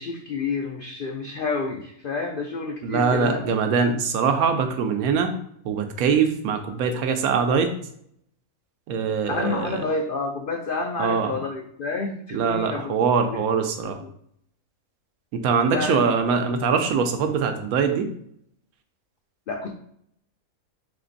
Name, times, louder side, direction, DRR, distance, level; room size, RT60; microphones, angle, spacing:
voice 1, 0.0-3.5 9.2-13.0 13.3-13.4 14.0-14.1 15.7-16.1 19.5-19.7, left 3 dB, 80° left, 2 dB, 0.4 m, -29 dB
voice 2, 2.8-5.4 5.6-7.7 8.9-9.8 11.0-11.3 12.3-14.0 15.3-18.1, right 5 dB, 80° right, 6 dB, 1.1 m, -23 dB
3.7 x 3.3 x 3.9 m, 0.68 s
omnidirectional pair, 1.5 m